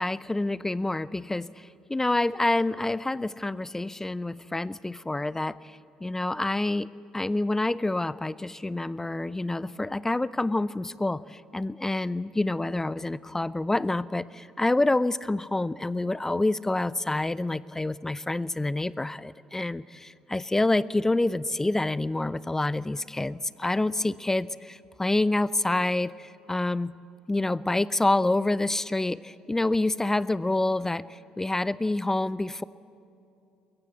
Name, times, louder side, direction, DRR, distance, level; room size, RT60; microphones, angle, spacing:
voice 1, 0.0-27.0 27.3-32.6, left 2 dB, 15° left, 20 dB, 0.5 m, -27 dB
23.5 x 22.0 x 8.2 m, 2.7 s
figure-of-eight pair, 50°, 3 cm